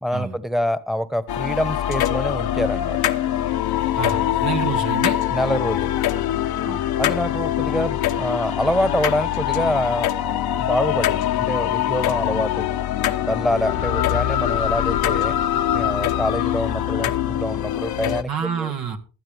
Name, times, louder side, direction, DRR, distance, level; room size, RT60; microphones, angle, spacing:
voice 1, 0.0-3.0 5.3-5.9 7.0-12.7 13.2-18.7, equal, ahead, 15 dB, 1.2 m, -26 dB
sound 1, 1.3-18.2, left 12 dB, 75° left, 1.1 m, -23 dB
voice 2, 4.0-5.2 6.6-6.8 18.3-19.0, right 7 dB, 70° right, 4 dB, 1.8 m, -27 dB
16.0 x 11.5 x 3.5 m, 0.35 s
supercardioid pair, 55°, 37 cm